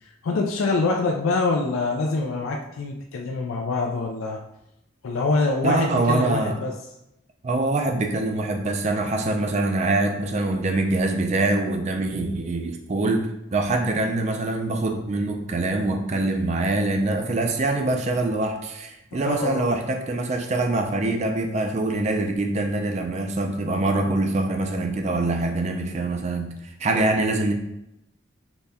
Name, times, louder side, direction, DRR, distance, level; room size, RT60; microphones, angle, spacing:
voice 1, 0.0-4.4 5.0-6.7 19.1-19.8, left 3 dB, 85° left, 2 dB, 0.4 m, -25 dB
voice 2, 5.6-6.6 7.4-26.5 26.8-27.5, right 2 dB, 35° right, 4 dB, 0.4 m, -24 dB
4.0 x 2.2 x 3.4 m, 0.86 s
head